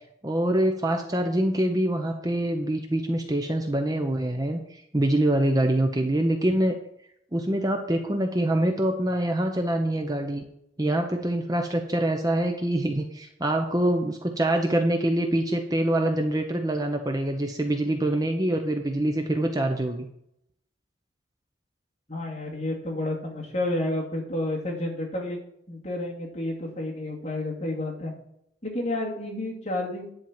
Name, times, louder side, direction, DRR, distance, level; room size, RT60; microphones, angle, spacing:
voice 1, 0.2-6.8 7.3-10.4 10.8-20.1, right 1 dB, 20° right, 4 dB, 0.7 m, -25 dB
voice 2, 22.1-25.4 25.7-28.1 28.6-30.1, left 1 dB, 35° left, -3 dB, 2.6 m, -30 dB
10.5 x 4.5 x 7.4 m, 0.75 s
head